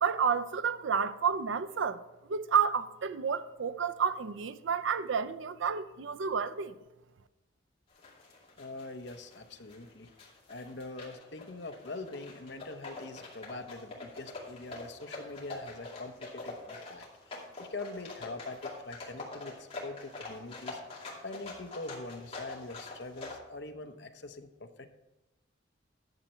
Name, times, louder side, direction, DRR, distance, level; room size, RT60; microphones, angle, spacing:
voice 1, 0.0-2.0 2.3-6.7, right 6 dB, 90° right, 0.5 m, -30 dB
sound 1, 7.9-23.4, left 3 dB, 30° left, 2.4 m, -45 dB
voice 2, 8.6-10.1 10.5-20.8 21.2-24.9, left 2 dB, 65° left, 0.8 m, -43 dB
10.5 x 7.3 x 4.3 m
head